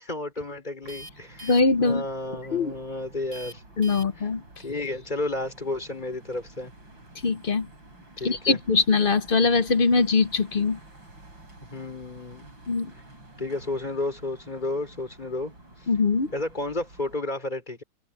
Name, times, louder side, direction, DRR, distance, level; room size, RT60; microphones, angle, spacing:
voice 1, 0.0-3.6 4.2-4.3 4.6-6.7 8.2-8.6 11.7-12.5 13.4-15.5 16.3-17.8, left 2 dB, 20° left, 5.5 m, -32 dB
sound 1, 0.8-17.2, right 1 dB, 75° right, 8.4 m, -49 dB
voice 2, 1.4-2.0 2.5-2.7 3.8-4.4 7.2-7.7 8.2-10.8 12.7-12.9 15.9-16.3, left 4 dB, 50° left, 0.6 m, -22 dB
open air
omnidirectional pair, 2.1 m